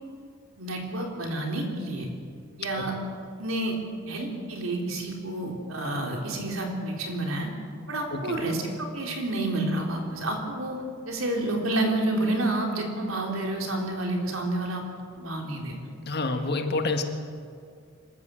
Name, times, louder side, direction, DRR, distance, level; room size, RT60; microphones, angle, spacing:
voice 1, 0.6-2.1 2.6-2.9 3.4-3.8 4.1-7.5 7.9-15.8, right 1 dB, 85° right, 1 dB, 3.8 m, -29 dB
voice 2, 16.1-17.0, left 3 dB, 55° left, 6 dB, 1.7 m, -27 dB
25.5 x 13.5 x 7.8 m, 2.3 s
head